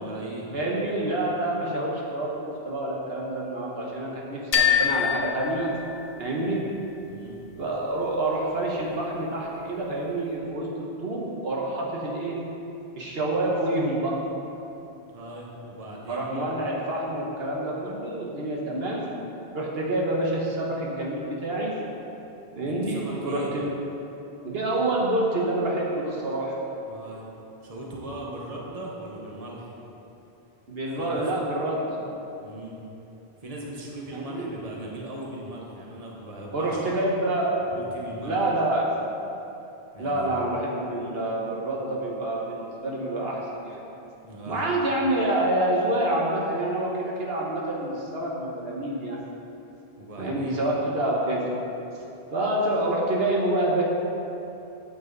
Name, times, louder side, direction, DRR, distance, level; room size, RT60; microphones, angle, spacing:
voice 1, 0.0-0.5 7.1-7.4 15.1-16.5 22.6-23.5 26.8-27.3 27.6-29.7 31.0-31.2 32.4-32.8 33.4-36.8 37.7-38.4 39.9-40.3 44.2-44.7 50.0-50.6, right 1 dB, 35° right, -2 dB, 1.3 m, -39 dB
voice 2, 0.5-5.7 6.2-6.7 7.6-12.4 13.0-14.3 16.1-19.1 19.5-21.8 22.5-23.7 24.4-26.6 30.7-32.0 34.1-34.5 36.5-37.6 38.2-39.0 40.0-43.8 44.5-49.2 50.2-51.5 52.3-53.8, right 1 dB, 70° right, -3 dB, 1.3 m, -27 dB
sound 1, 4.5-6.4, left 8 dB, 70° left, 1.2 m, -25 dB
8.7 x 8.4 x 4.0 m, 2.9 s
omnidirectional pair, 1.1 m